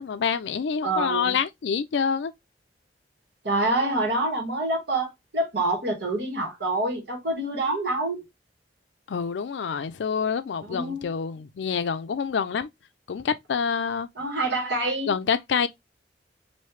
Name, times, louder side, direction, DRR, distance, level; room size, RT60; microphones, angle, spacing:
voice 1, 0.0-2.3 9.1-12.7 13.1-14.1 15.1-15.7, left 6 dB, 70° left, 0.4 m, -27 dB
voice 2, 0.8-1.4 3.4-8.3 10.7-11.1 14.1-15.1, right 2 dB, 65° right, 1.6 m, -26 dB
3.2 x 2.7 x 3.0 m
head